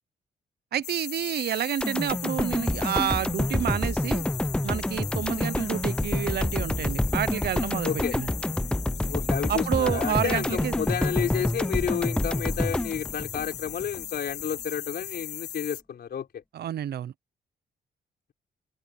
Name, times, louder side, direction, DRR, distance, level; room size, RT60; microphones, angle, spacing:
voice 1, 0.7-4.2 4.6-8.3 9.5-10.7 16.5-17.1, right 10 dB, 70° right, 0.9 m, -29 dB
sound 1, 0.8-15.8, left 12 dB, 80° left, 1.2 m, -38 dB
sound 2, 1.8-14.0 14.4-14.5, left 1 dB, 5° left, 0.7 m, -28 dB
voice 2, 7.8-8.2 9.1-16.4, left 8 dB, 65° left, 5.1 m, -31 dB
open air
cardioid pair, 75°, 17 cm